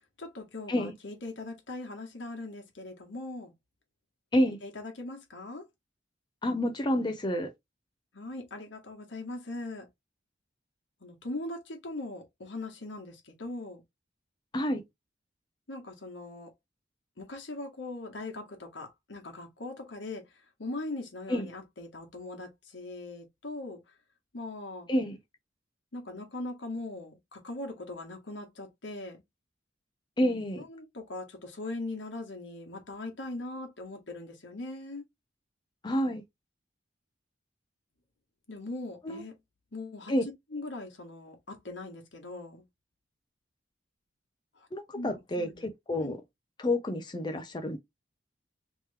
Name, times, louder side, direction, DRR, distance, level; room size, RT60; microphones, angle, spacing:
voice 1, 0.2-3.5 4.6-5.6 8.1-9.9 11.0-13.8 15.7-16.5 17.2-20.2 20.6-23.8 24.3-24.9 25.9-29.2 30.6-35.0 38.5-39.3 39.7-40.1 40.5-42.6 44.9-45.7 46.0-46.1, left 2 dB, 75° left, 1.3 m, -40 dB
voice 2, 6.4-7.5 14.5-14.8 21.3-21.5 24.9-25.2 30.2-30.6 35.8-36.2 39.0-39.2 40.1-40.2 44.7-46.2 46.6-47.8, left 1 dB, 25° left, 0.5 m, -29 dB
3.2 x 3.0 x 3.2 m
head